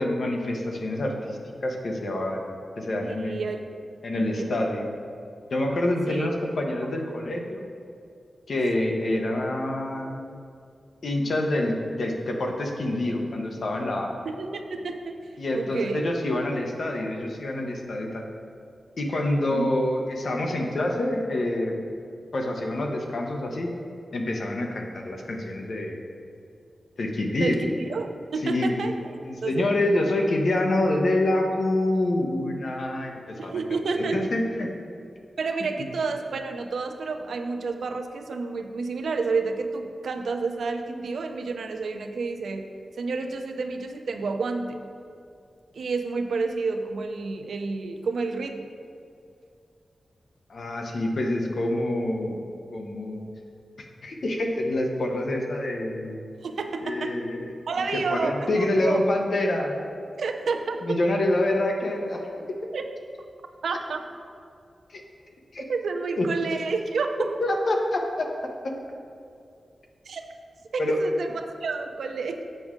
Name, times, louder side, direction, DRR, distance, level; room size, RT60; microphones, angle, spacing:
voice 1, 0.0-3.4 4.0-4.9 5.5-7.6 8.5-10.3 11.0-14.1 15.4-18.2 19.0-21.7 22.3-23.7 24.1-26.0 27.0-27.6 28.4-28.8 29.2-33.6 34.0-34.7 35.8-35.9 50.5-52.4 52.7-53.3 54.0-56.2 56.8-57.5 58.1-59.8 60.8-62.3 64.9-65.0 65.5-65.6 66.2-66.3 67.4-68.3 68.6-68.7 70.8-71.0, left 1 dB, 60° left, 1 dB, 0.9 m, -26 dB
voice 2, 3.0-3.6 4.2-4.8 6.1-6.3 14.3-15.2 15.5-16.1 19.5-19.6 27.3-29.1 29.4-29.7 33.4-34.3 35.4-42.7 43.0-44.9 45.7-48.7 56.4-57.2 57.7-58.5 58.8-59.1 60.2-61.0 62.7-62.8 63.6-64.0 65.7-67.3 70.1-70.2 70.7-72.4, right 4 dB, 85° right, 5 dB, 0.5 m, -30 dB
7.7 x 6.1 x 3.7 m, 2.4 s
wide cardioid pair, 145°, 0 cm